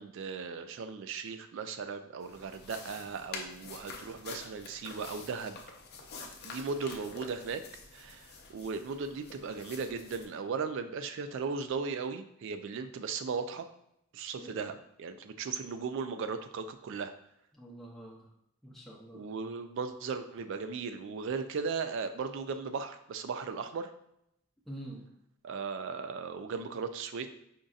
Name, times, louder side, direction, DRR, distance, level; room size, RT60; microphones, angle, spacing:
voice 1, 0.0-5.6 6.4-7.6 7.9-13.7 14.1-17.1 19.1-23.9 25.4-27.3, right 5 dB, 60° right, 9 dB, 0.3 m, -37 dB
sound 1, 2.2-10.3, left 4 dB, 45° left, 0.5 m, -47 dB
voice 2, 14.3-14.7 17.5-18.3 18.6-19.3 24.7-25.1, right 1 dB, ahead, -4 dB, 0.6 m, -46 dB
5.1 x 2.6 x 2.4 m, 0.78 s
head